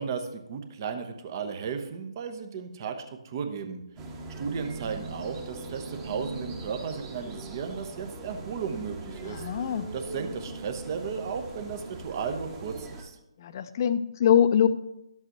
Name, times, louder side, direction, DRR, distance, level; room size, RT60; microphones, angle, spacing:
voice 1, 0.0-2.9 3.2-3.8 4.4-9.4 9.9-13.2, right 6 dB, 35° right, 7 dB, 1.0 m, -34 dB
sound 1, 4.0-13.0, right 2 dB, 15° right, 1.2 m, -40 dB
voice 2, 9.2-9.9 13.4-14.7, left 9 dB, 35° left, 11 dB, 0.6 m, -23 dB
12.0 x 7.8 x 3.0 m, 0.86 s
figure-of-eight pair, 145°, 3 cm